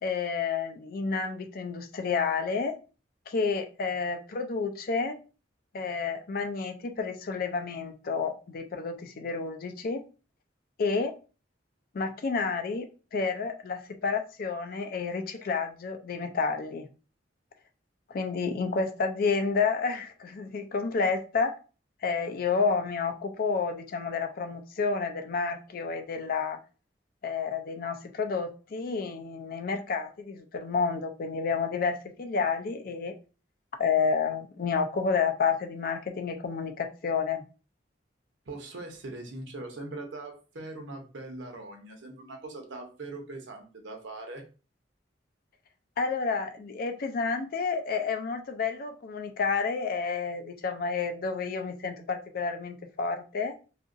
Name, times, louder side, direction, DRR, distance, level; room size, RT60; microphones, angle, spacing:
voice 1, 0.0-2.7 3.3-5.2 5.7-10.0 10.8-11.1 11.9-16.9 18.1-21.5 22.0-26.6 27.2-33.1 33.8-37.4 46.0-53.6, left 5 dB, 50° left, 0.4 m, -30 dB
voice 2, 38.5-44.4, right 2 dB, 80° right, 0.8 m, -41 dB
2.8 x 2.4 x 2.5 m
head